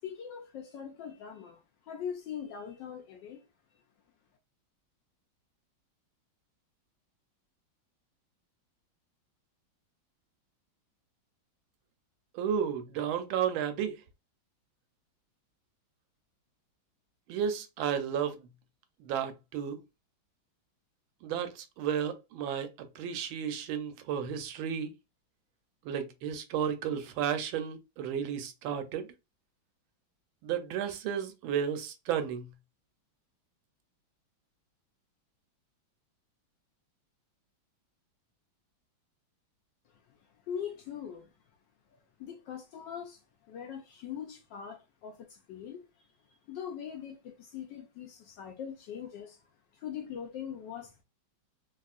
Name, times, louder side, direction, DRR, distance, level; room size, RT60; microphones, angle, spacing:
voice 1, 0.0-3.5 40.1-40.2 40.5-41.3 42.2-43.2 43.5-45.9 46.3-49.4 49.7-51.0, left 8 dB, 75° left, 1.2 m, -41 dB
voice 2, 12.3-14.0 17.3-18.5 19.0-19.8 21.2-24.9 25.8-29.1 30.4-32.5, right 8 dB, 85° right, 1.4 m, -33 dB
3.5 x 2.3 x 2.4 m
omnidirectional pair, 2.2 m